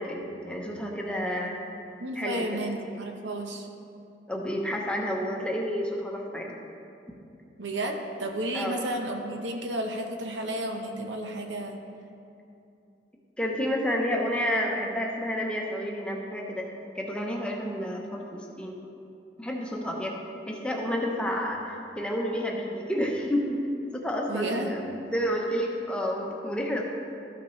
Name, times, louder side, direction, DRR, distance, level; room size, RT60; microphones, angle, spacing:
voice 1, 0.0-1.6 2.2-2.4 4.3-6.5 8.5-8.8 13.4-16.7 17.0-18.8 19.4-20.2 20.5-23.6 23.9-26.8, equal, 5° left, -1 dB, 0.7 m, -30 dB
voice 2, 2.0-3.7 7.6-11.8 24.3-24.7, right 1 dB, 85° right, 3 dB, 0.9 m, -32 dB
13.0 x 5.9 x 3.1 m, 2.6 s
head